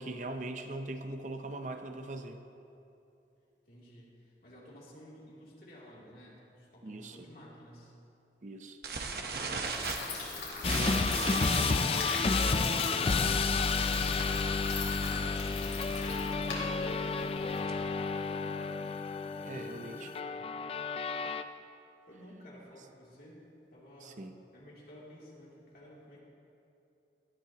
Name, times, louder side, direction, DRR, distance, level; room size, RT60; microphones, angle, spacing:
voice 1, 0.0-2.4 6.8-7.2 8.4-8.8 19.5-20.1 24.0-24.3, right 2 dB, 45° right, 6 dB, 0.6 m, -41 dB
voice 2, 3.7-7.9 9.3-9.8 19.3-20.0 22.1-23.4 23.7-24.3 24.5-26.2, equal, 55° left, -6 dB, 3.0 m, -53 dB
sound 1, 8.8-14.5 14.7-15.0 15.3-15.4 15.7-15.9 16.4-18.0, right 4 dB, 60° right, 1.1 m, -38 dB
sound 2, 9.6-17.6, left 3 dB, 85° left, 3.5 m, -40 dB
sound 3, 10.6-21.4, left 4 dB, 35° left, 0.4 m, -31 dB
18.5 x 12.5 x 3.0 m, 2.8 s
head